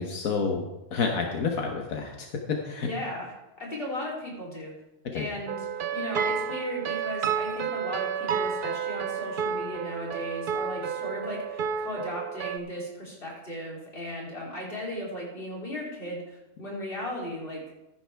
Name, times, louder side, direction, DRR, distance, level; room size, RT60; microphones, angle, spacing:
voice 1, 0.0-2.9 5.0-5.3, left 5 dB, 85° left, 2 dB, 1.6 m, -29 dB
voice 2, 2.9-3.3 3.6-4.7 5.1-17.6, left 1 dB, 40° left, -3 dB, 3.7 m, -36 dB
sound 1, 5.5-12.6, right 7 dB, 50° right, 0.7 m, -31 dB
15.0 x 10.5 x 3.5 m, 0.96 s
omnidirectional pair, 1.4 m